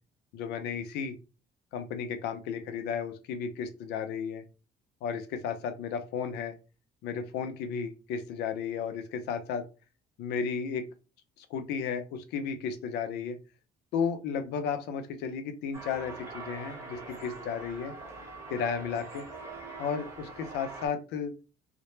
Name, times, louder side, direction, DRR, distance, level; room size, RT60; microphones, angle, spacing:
voice 1, 0.3-1.2 1.7-4.4 5.0-6.5 7.0-9.6 10.2-10.9 11.4-13.4 13.9-17.9 18.5-19.3 19.8-21.3, left 6 dB, 80° left, 7 dB, 0.5 m, -33 dB
sound 1, 15.7-20.9, right 3 dB, 15° right, 0.8 m, -43 dB
2.1 x 2.1 x 3.0 m, 0.31 s
cardioid pair, 110°, 17 cm